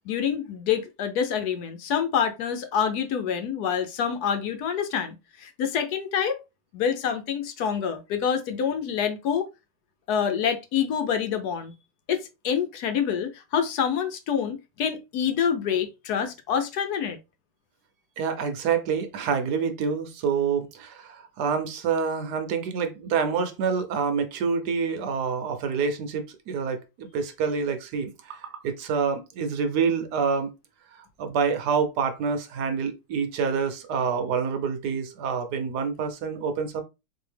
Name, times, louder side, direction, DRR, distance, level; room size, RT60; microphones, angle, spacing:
voice 1, 0.1-6.4 6.7-9.5 10.1-11.7 12.1-17.2, left 7 dB, 70° left, 1.1 m, -27 dB
voice 2, 18.2-30.5 31.2-36.8, right 6 dB, 70° right, 1.2 m, -27 dB
4.1 x 2.8 x 3.3 m
omnidirectional pair, 1.9 m